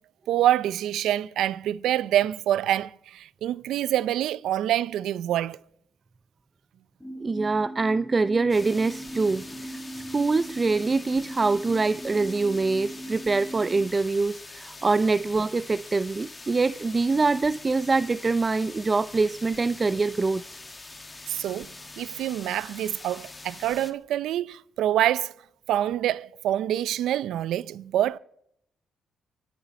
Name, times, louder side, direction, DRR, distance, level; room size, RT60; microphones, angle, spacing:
voice 1, 0.3-5.6 21.3-21.7 22.0-25.3 25.7-28.2, right 12 dB, 80° right, 0.5 m, -26 dB
sound 1, 7.0-13.9, right 1 dB, ahead, 7.5 m, -40 dB
voice 2, 7.2-20.4, right 3 dB, 30° right, 0.5 m, -24 dB
sound 2, 8.5-23.9, left 2 dB, 20° left, 1.8 m, -44 dB
24.5 x 9.2 x 5.2 m
cardioid pair, 90°, 0 cm